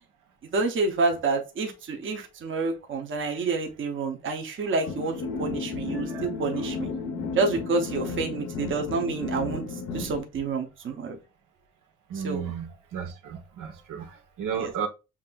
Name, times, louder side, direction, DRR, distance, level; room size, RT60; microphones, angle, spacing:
voice 1, 0.4-6.9 7.3-11.2 12.1-12.5 14.5-14.7, right 3 dB, 40° right, 0.8 m, -28 dB
sound 1, 4.9-10.2, left 4 dB, 65° left, 0.7 m, -33 dB
voice 2, 5.9-6.3 12.1-14.9, right 7 dB, 85° right, 1.0 m, -34 dB
7.3 x 2.6 x 2.3 m
cardioid pair, 175°, 31 cm